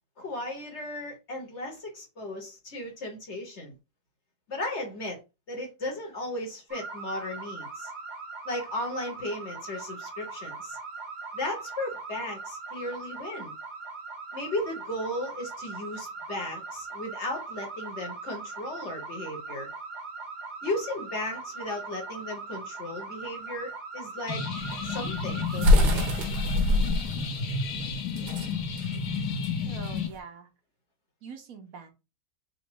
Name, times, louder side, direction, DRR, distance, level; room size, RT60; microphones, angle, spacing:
voice 1, 0.2-3.7 4.5-5.2 5.5-7.9 8.4-10.8 11.3-13.5 14.3-19.7 20.6-24.4 24.8-26.1, left 1 dB, 45° left, 1.4 m, -35 dB
sound 1, 6.7-25.7, right 4 dB, 35° right, 0.9 m, -40 dB
sound 2, 24.3-30.1, left 5 dB, 70° left, 1.3 m, -31 dB
sound 3, 24.6-30.2, left 1 dB, 80° right, 1.4 m, -25 dB
voice 2, 29.7-30.5 31.2-31.9, right 6 dB, 60° right, 1.3 m, -44 dB
4.1 x 2.3 x 4.5 m
omnidirectional pair, 1.8 m